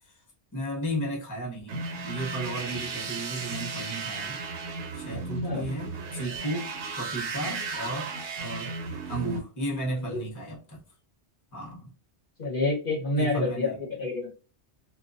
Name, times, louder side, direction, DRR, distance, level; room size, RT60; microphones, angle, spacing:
voice 1, 0.5-4.4 4.9-8.8 9.1-10.8 11.5-11.9 13.2-13.7, right 1 dB, 20° left, 0.7 m, -34 dB
sound 1, 1.7-9.4, right 3 dB, 75° right, 0.9 m, -35 dB
voice 2, 5.1-5.7 7.5-7.6 10.0-10.2 12.4-14.3, left 2 dB, 55° left, 0.8 m, -29 dB
2.2 x 2.2 x 2.4 m
omnidirectional pair, 1.2 m